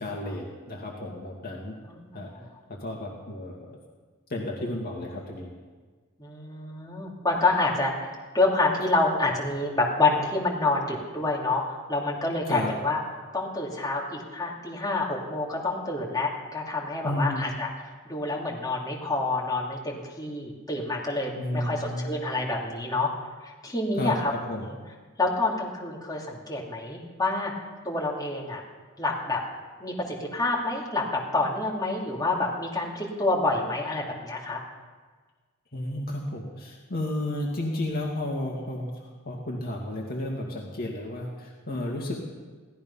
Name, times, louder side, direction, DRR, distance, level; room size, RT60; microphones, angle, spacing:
voice 1, 0.0-1.8 2.1-2.3 2.8-3.8 4.3-5.5 12.5-12.7 17.0-17.4 21.4-22.2 24.0-24.7 35.7-42.2, left 1 dB, 45° left, -1 dB, 2.2 m, -32 dB
voice 2, 1.9-2.5 6.2-13.0 13.3-17.7 18.1-23.1 23.4-24.3 24.7-24.8 25.2-27.5 27.8-28.6 29.0-29.4 29.8-34.6, left 2 dB, 15° left, -3 dB, 2.9 m, -28 dB
17.0 x 14.0 x 5.6 m, 1.4 s
head